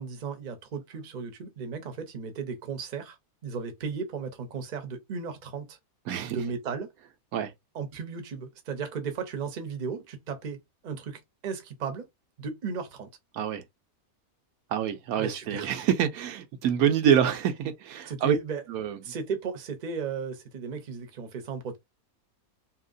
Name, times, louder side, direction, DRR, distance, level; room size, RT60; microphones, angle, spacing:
voice 1, 0.0-3.2 3.4-5.8 6.3-6.9 7.7-12.1 12.4-13.1 15.2-15.7 18.1-18.6 19.0-21.8, right 5 dB, 40° right, 0.7 m, -35 dB
voice 2, 14.7-18.4 18.7-19.0, right 9 dB, 75° right, 1.1 m, -26 dB
2.9 x 2.8 x 2.5 m
omnidirectional pair, 1.5 m